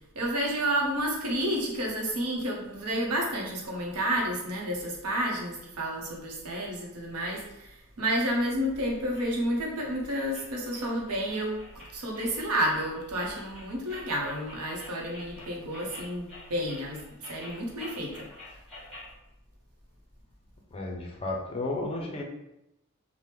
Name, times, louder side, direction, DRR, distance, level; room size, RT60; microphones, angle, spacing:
voice 1, 0.1-18.3, equal, 90° right, -1 dB, 0.8 m, -30 dB
sound 1, 9.1-19.1, left 2 dB, ahead, 1.1 m, -49 dB
voice 2, 20.7-22.2, left 2 dB, 25° left, 1 dB, 0.4 m, -33 dB
2.9 x 2.0 x 3.3 m, 0.88 s
head